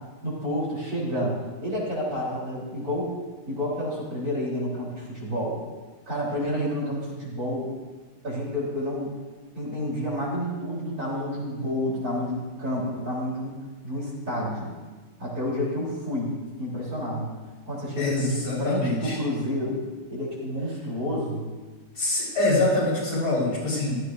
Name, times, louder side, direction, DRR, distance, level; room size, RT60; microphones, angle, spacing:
voice 1, 0.2-1.3 1.6-3.2 3.5-5.6 6.1-7.7 8.2-9.1 9.5-13.5 13.8-14.7 15.2-17.3 17.6-19.8 20.1-21.5, equal, 45° right, -6 dB, 4.2 m, -29 dB
voice 2, 18.0-19.2 22.0-24.0, left 2 dB, 90° left, -6 dB, 5.7 m, -25 dB
15.5 x 13.5 x 2.6 m, 1.3 s
omnidirectional pair, 2.2 m